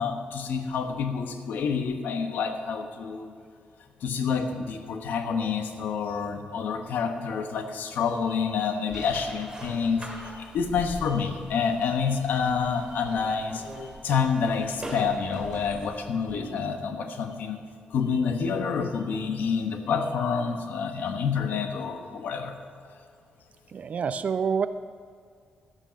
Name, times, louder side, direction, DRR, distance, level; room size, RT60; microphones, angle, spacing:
voice 1, 0.0-3.3 4.0-17.6 17.9-22.5, left 6 dB, 80° left, 6 dB, 1.2 m, -28 dB
sound 1, 8.9-16.7, right 1 dB, 20° right, 2.4 m, -42 dB
voice 2, 23.7-24.7, right 6 dB, 50° right, 12 dB, 0.5 m, -27 dB
12.5 x 8.8 x 6.3 m, 2.1 s
cardioid pair, 120°, 3 cm